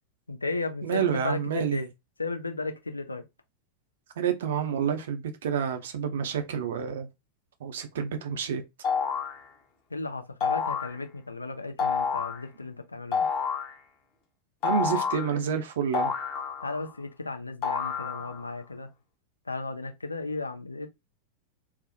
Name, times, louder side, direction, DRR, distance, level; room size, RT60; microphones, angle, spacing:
voice 1, 0.3-1.9 2.2-3.2 9.9-13.3 16.6-18.9 19.5-20.9, left 3 dB, 80° left, 0.4 m, -35 dB
voice 2, 0.8-1.9 4.2-7.1 7.6-8.6 14.6-16.1, right 7 dB, 60° right, 0.5 m, -29 dB
sound 1, 8.8-9.4 10.4-11.0 11.8-12.4 13.1-13.7 14.6-15.3 15.9-16.9 17.6-18.5, left 6 dB, 35° left, 0.8 m, -29 dB
2.4 x 2.1 x 2.5 m
figure-of-eight pair, 90°, 0 cm